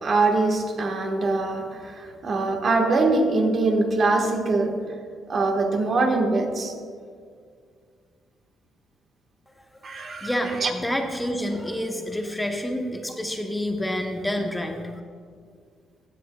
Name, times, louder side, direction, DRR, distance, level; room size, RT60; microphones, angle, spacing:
voice 1, 0.0-4.8 5.3-6.7 9.8-10.3 10.6-10.7, right 3 dB, 50° right, 3 dB, 1.3 m, -23 dB
voice 2, 9.9-14.9, equal, 5° left, 3 dB, 0.8 m, -28 dB
15.5 x 7.6 x 2.2 m, 2.1 s
cardioid pair, 90°, 0 cm